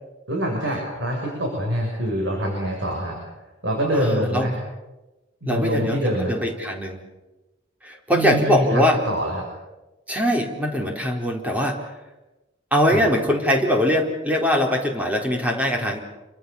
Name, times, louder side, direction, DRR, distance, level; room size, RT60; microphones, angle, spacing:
voice 1, 0.3-3.2 3.6-4.5 5.4-6.3 8.1-9.4 12.9-13.1, equal, 75° right, 0 dB, 7.2 m, -25 dB
voice 2, 3.9-4.5 5.5-7.0 7.8-9.0 10.1-11.8 12.7-16.0, equal, 10° right, 1 dB, 4.1 m, -22 dB
28.5 x 24.5 x 7.1 m, 1.1 s
head